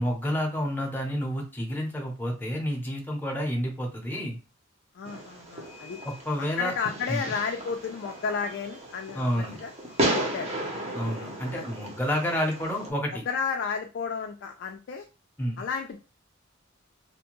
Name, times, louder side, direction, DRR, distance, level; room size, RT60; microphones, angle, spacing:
voice 1, 0.0-4.4 6.0-6.7 7.1-7.3 9.1-9.6 10.9-13.2 15.4-15.6, equal, 10° left, 0 dB, 0.7 m, -29 dB
voice 2, 4.9-6.0 6.4-9.7 10.1-10.6 11.5-11.7 13.1-15.1 15.6-16.0, left 6 dB, 60° left, 4 dB, 0.3 m, -32 dB
Fireworks, 5.0-12.9, right 1 dB, 30° right, 0.7 m, -34 dB
2.5 x 2.2 x 2.9 m, 0.31 s
head